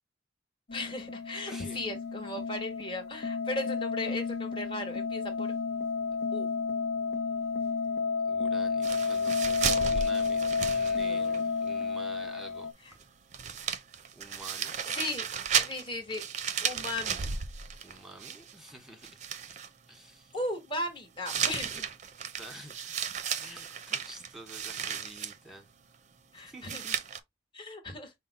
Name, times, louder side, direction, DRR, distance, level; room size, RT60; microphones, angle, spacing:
sound 1, 0.7-12.7, left 5 dB, 60° left, 0.7 m, -31 dB
voice 1, 0.7-5.5 6.3-6.5 10.9-11.4 14.9-15.2 15.6-16.2 16.6-17.3 20.3-21.9 26.3-26.8 27.5-28.1, left 1 dB, 25° left, 1.3 m, -37 dB
voice 2, 1.4-1.8 8.3-13.1 14.1-14.8 17.8-19.2 19.9-20.3 21.7-21.8 22.4-23.0 23.4-25.7 26.3-27.0, right 1 dB, ahead, 1.3 m, -49 dB
sound 2, 8.8-11.4 11.7-11.8 13.0-13.1 13.3-18.7 19.0-19.7 21.2-25.4 26.6-27.2, right 7 dB, 40° right, 0.5 m, -34 dB
5.5 x 2.1 x 4.0 m
head